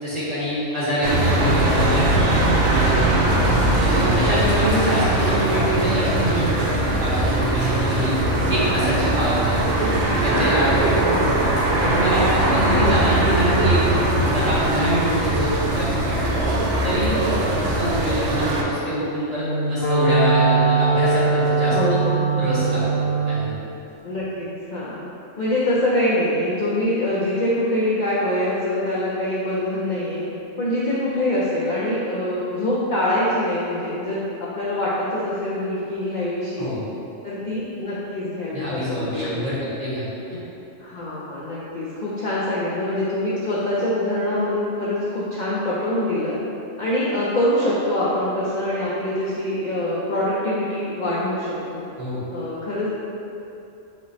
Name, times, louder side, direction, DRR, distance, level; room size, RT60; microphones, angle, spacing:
voice 1, 0.0-2.2 2.6-3.2 3.8-8.2 8.5-9.8 10.2-11.3 11.8-13.8 14.1-16.3 16.8-17.1 17.6-22.0 22.4-22.8 23.3-23.5 36.6-36.8 38.5-40.4 52.0-52.2, equal, 35° right, -9 dB, 0.9 m, -25 dB
sound 1, 1.0-18.6, right 1 dB, 70° right, 0.9 m, -20 dB
voice 2, 3.4-3.8 11.0-11.5 12.6-13.0 21.7-22.4 24.0-25.0 25.4-30.2 30.6-36.7 37.2-39.5 40.8-46.4 46.8-51.8 52.3-52.9, left 1 dB, 55° left, -8 dB, 0.5 m, -24 dB
Wind instrument woodwind instrument, 19.3-23.5, right 4 dB, 85° left, 1.2 m, -20 dB
5.1 x 2.0 x 4.0 m, 2.9 s
omnidirectional pair, 1.3 m